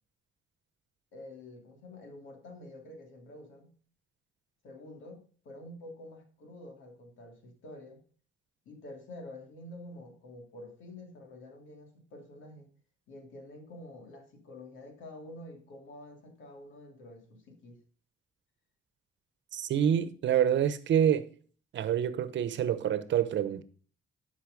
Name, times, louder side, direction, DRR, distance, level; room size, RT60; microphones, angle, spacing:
voice 1, 1.1-3.8 4.6-8.0 8.6-12.7 13.1-17.8, left 1 dB, 75° left, 2.8 m, -48 dB
voice 2, 19.5-21.3 21.7-23.6, right 9 dB, 65° right, 1.0 m, -27 dB
12.0 x 5.6 x 5.2 m
cardioid pair, 90°, 20 cm